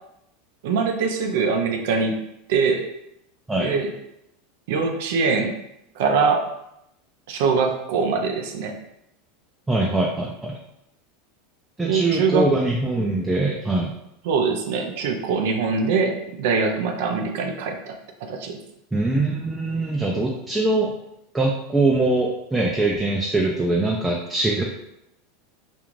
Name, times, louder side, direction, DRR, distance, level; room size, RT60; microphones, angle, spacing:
voice 1, 0.6-2.2 2.5-2.8 3.6-3.9 4.7-5.5 6.0-6.5 7.3-8.8 11.9-12.5 14.2-18.0 18.3-18.6, right 5 dB, 70° right, 3 dB, 0.4 m, -23 dB
voice 2, 9.7-10.6 11.8-13.9 18.9-20.9 21.3-24.6, right 2 dB, 10° right, -2 dB, 0.4 m, -22 dB
2.5 x 2.3 x 3.0 m, 0.82 s
hypercardioid pair, 105°, 0 cm